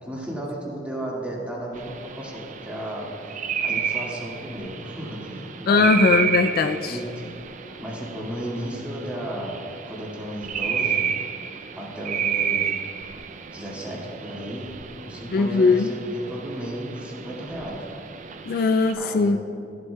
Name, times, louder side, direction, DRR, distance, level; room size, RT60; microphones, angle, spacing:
voice 1, 0.0-3.1 3.6-6.1 6.9-7.3 7.8-9.6 9.9-11.1 11.7-12.7 13.5-14.7 15.0-17.8 18.9-19.5, right 1 dB, 10° right, -5 dB, 1.8 m, -34 dB
sound 1, 1.8-18.9, right 7 dB, 45° right, 0.4 m, -31 dB
voice 2, 5.7-7.0 15.3-15.9 18.5-19.4, left 4 dB, 55° left, 8 dB, 0.3 m, -20 dB
13.5 x 8.0 x 2.2 m, 2.6 s
head